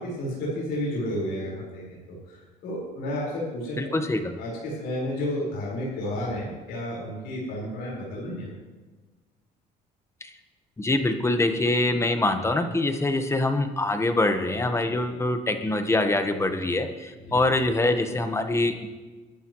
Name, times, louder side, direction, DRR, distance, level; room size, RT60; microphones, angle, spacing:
voice 1, 0.0-2.4 2.6-3.7 4.4-8.5 12.6-12.7 15.0-15.2 17.3-17.4, left 1 dB, 90° left, -5 dB, 4.8 m, -31 dB
voice 2, 3.8-4.3 10.2-10.3 10.8-18.9, left 2 dB, 15° left, 7 dB, 1.2 m, -24 dB
22.0 x 11.0 x 3.1 m, 1.3 s
cardioid pair, 110°, 17 cm